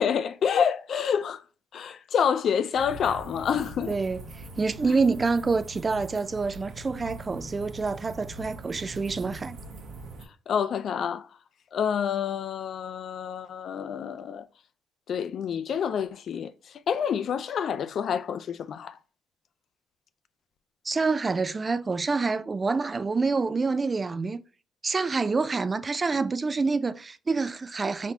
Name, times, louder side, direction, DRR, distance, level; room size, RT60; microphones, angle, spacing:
voice 1, 0.0-1.4 1.7-3.9 10.5-11.3 11.7-14.4 15.1-16.5 16.9-19.0, left 7 dB, 60° left, 0.4 m, -28 dB
sound 1, 2.7-10.3, right 2 dB, 70° right, 1.3 m, -42 dB
voice 2, 3.9-4.2 4.6-9.6 20.9-24.4 24.8-28.1, right 4 dB, 30° right, 0.4 m, -27 dB
4.2 x 2.7 x 4.5 m
cardioid pair, 90°, 0 cm